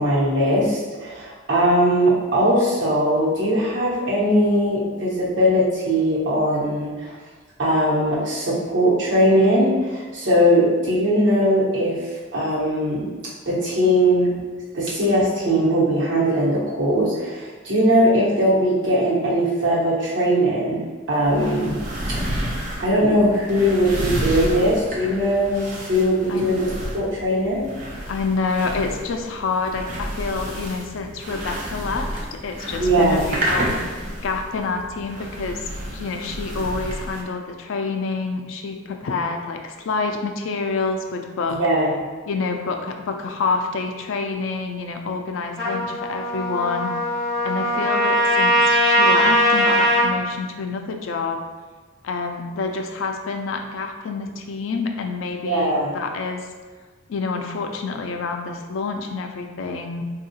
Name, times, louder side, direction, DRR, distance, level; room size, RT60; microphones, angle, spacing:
voice 1, 0.0-7.1 7.6-12.0 12.3-13.1 13.5-14.3 14.7-21.8 22.8-26.7 26.9-27.6 32.8-33.3 41.6-42.0 55.4-55.9, equal, 70° right, -7 dB, 1.0 m, -20 dB
sound 1, 21.2-37.2, right 1 dB, 40° right, 0.6 m, -30 dB
voice 2, 28.1-34.0 34.2-41.6 42.3-46.9 47.4-51.4 52.0-56.5 57.1-60.0, left 4 dB, 90° left, 4 dB, 0.4 m, -27 dB
Trumpet, 45.6-50.1, equal, ahead, 1.2 m, -20 dB
3.5 x 2.3 x 2.7 m, 1.4 s
head